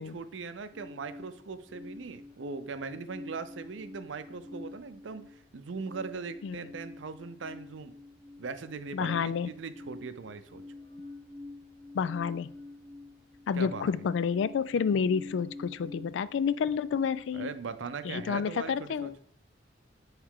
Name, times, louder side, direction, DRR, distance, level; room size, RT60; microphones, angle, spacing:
voice 1, 0.0-7.9 8.4-10.6 13.6-14.0 17.3-19.1, right 4 dB, 85° right, 11 dB, 0.5 m, -40 dB
sound 1, 0.7-18.3, left 2 dB, ahead, 1.4 m, -47 dB
voice 2, 8.9-9.5 11.9-12.5 13.5-17.5 18.0-19.2, left 6 dB, 80° left, 16 dB, 0.3 m, -29 dB
9.4 x 3.2 x 3.6 m, 0.69 s
head